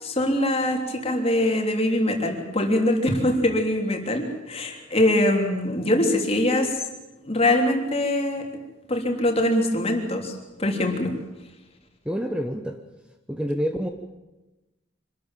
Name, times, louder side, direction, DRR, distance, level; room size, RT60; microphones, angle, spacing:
voice 1, 0.0-6.7 7.2-8.4 8.9-10.3 10.6-11.1, left 1 dB, 30° left, 2 dB, 3.3 m, -23 dB
voice 2, 12.1-12.8 13.3-13.9, equal, 5° right, 5 dB, 1.1 m, -27 dB
25.5 x 13.5 x 9.1 m, 1.1 s
head